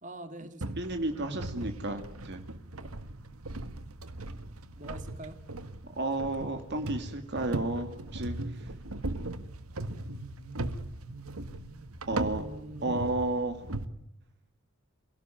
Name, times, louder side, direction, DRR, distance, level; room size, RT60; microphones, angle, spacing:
voice 1, 0.0-0.8 2.7-3.0 4.8-5.4 12.2-13.0, right 1 dB, 35° right, 7 dB, 2.5 m, -44 dB
sound 1, 0.6-13.9, right 2 dB, 90° right, 1.7 m, -38 dB
voice 2, 0.8-2.4 6.0-8.4 12.1-12.4 12.8-13.7, right 2 dB, 50° right, 6 dB, 2.2 m, -32 dB
28.0 x 17.5 x 9.1 m, 0.81 s
head